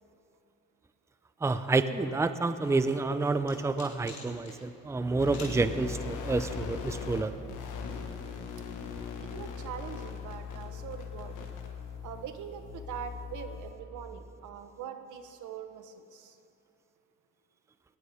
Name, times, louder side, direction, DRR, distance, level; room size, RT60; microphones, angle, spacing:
voice 1, 1.4-7.3, right 3 dB, 10° right, 11 dB, 0.5 m, -29 dB
sound 1, 2.6-4.6 5.3-5.6, left 4 dB, 65° left, 3.8 m, -46 dB
sound 2, 5.2-7.2 7.5-13.7, left 6 dB, 90° left, 1.6 m, -40 dB
voice 2, 9.2-11.5 12.0-16.4, right 8 dB, 80° right, 8 dB, 1.2 m, -43 dB
19.0 x 18.5 x 3.6 m, 2.8 s
cardioid pair, 90°, 30 cm